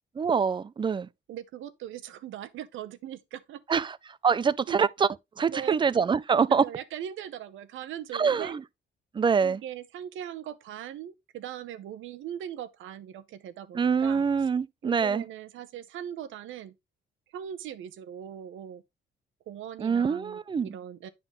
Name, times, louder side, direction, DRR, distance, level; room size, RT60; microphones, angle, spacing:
voice 1, 0.2-1.1 3.7-3.9 4.2-5.1 5.4-6.6 8.1-8.6 9.1-9.6 13.7-15.2 19.8-20.7, right 6 dB, 25° right, 0.4 m, -25 dB
voice 2, 1.3-3.6 4.7-4.9 5.5-5.8 6.4-8.6 9.4-14.5 14.8-16.8 17.3-18.8 19.5-21.1, right 10 dB, 80° right, 0.8 m, -40 dB
9.7 x 3.9 x 3.6 m
cardioid pair, 90°, 20 cm